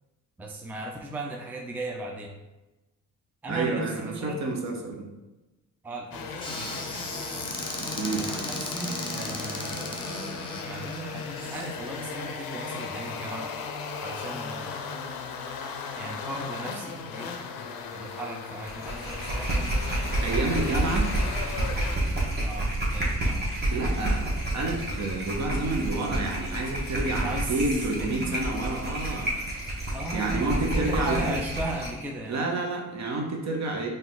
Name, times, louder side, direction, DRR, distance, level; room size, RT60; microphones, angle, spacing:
voice 1, 0.4-2.4 3.4-4.5 5.8-7.5 8.2-9.9 10.5-13.5 14.0-14.8 15.9-17.3 17.9-19.7 20.4-21.0 22.4-23.5 27.2-27.7 28.0-28.3 29.9-32.4, right 2 dB, 5° right, 1 dB, 0.4 m, -37 dB
voice 2, 3.5-5.1 8.0-8.2 20.2-21.1 23.7-29.3 30.1-31.3 32.2-33.9, right 2 dB, 50° right, 1 dB, 0.9 m, -29 dB
sound 1, 6.1-22.0, left 5 dB, 80° left, 0.6 m, -37 dB
Squeak / Cupboard open or close, 6.4-11.7, left 1 dB, 15° left, 0.8 m, -35 dB
sound 2, 18.6-32.0, right 1 dB, 30° right, 1.2 m, -29 dB
4.0 x 2.5 x 3.9 m, 1.1 s
cardioid pair, 90°, 35 cm